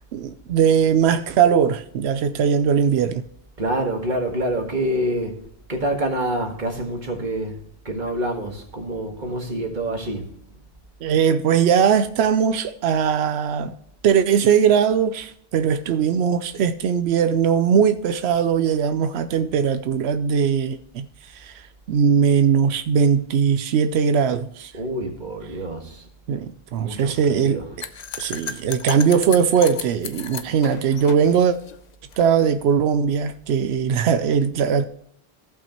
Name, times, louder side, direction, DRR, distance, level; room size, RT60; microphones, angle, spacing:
voice 1, 0.1-3.2 11.0-13.7 14.0-24.7 26.3-27.6 28.2-31.6 32.2-34.8, right 7 dB, 90° right, 0.8 m, -20 dB
voice 2, 3.6-5.4 5.7-7.6 7.8-10.3 24.7-26.1 26.8-27.8, right 1 dB, 50° right, 1.7 m, -27 dB
sound 1, 27.8-32.2, left 6 dB, 50° left, 0.7 m, -34 dB
15.0 x 5.7 x 2.9 m
omnidirectional pair, 1.1 m